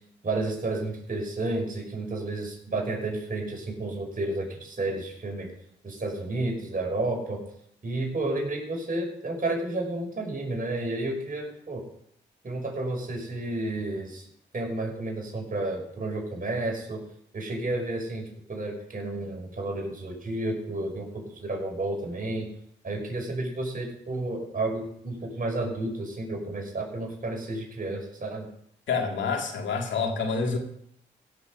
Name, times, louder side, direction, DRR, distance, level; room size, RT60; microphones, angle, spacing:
voice 1, 0.2-5.5 5.8-7.4 7.8-11.9 12.4-14.3 14.5-17.0 17.3-22.5 22.8-28.5, right 2 dB, 45° right, 0 dB, 5.8 m, -31 dB
voice 2, 28.9-30.6, left 5 dB, 75° left, 3 dB, 2.3 m, -27 dB
16.5 x 7.1 x 5.4 m, 0.71 s
supercardioid pair, 45°, 20 cm